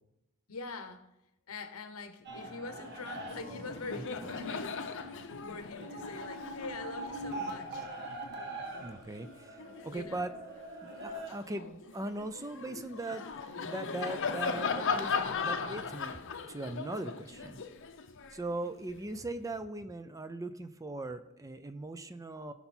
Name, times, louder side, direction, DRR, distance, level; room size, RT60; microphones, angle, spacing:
voice 1, 0.5-1.1 1.5-7.9 9.9-10.3, left 3 dB, 80° left, 9 dB, 1.1 m, -44 dB
sound 1, 2.2-11.3, right 1 dB, 50° right, 1.6 m, -43 dB
Laughter, 3.2-3.3 3.6-10.3 10.8-19.0, left 5 dB, 60° left, 0.8 m, -38 dB
voice 2, 8.7-10.3 10.8-16.2 16.5-17.6 18.3-22.5, right 2 dB, 15° right, 10 dB, 0.5 m, -40 dB
15.5 x 5.7 x 4.4 m, 0.87 s
head